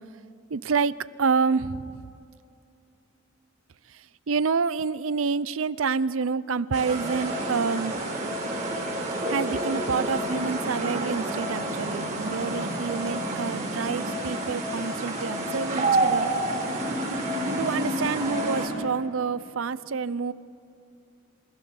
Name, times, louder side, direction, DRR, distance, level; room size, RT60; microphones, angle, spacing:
voice 1, 0.5-2.1 3.9-7.9 9.3-16.3 17.4-20.3, right 5 dB, 80° right, 17 dB, 0.6 m, -28 dB
sound 1, 6.7-18.7, right 1 dB, 40° right, 5.2 m, -29 dB
27.5 x 16.5 x 7.0 m, 2.7 s
head